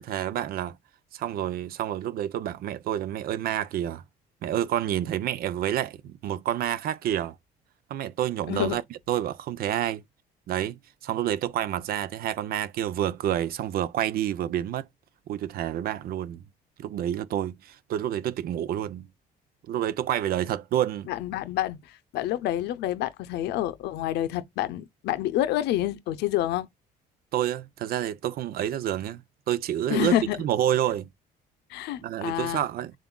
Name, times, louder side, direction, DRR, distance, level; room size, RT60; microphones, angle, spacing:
voice 1, 0.1-0.7 1.1-4.0 4.4-7.4 7.9-8.8 9.1-10.0 10.5-14.9 15.3-16.4 16.8-19.1 19.7-21.1 27.3-31.1 32.0-32.9, right 11 dB, 60° right, 0.5 m, -28 dB
voice 2, 8.5-8.8 21.1-26.7 29.9-30.4 31.7-32.6, left 13 dB, 80° left, 0.6 m, -28 dB
7.0 x 2.5 x 2.2 m
cardioid pair, 110°, 17 cm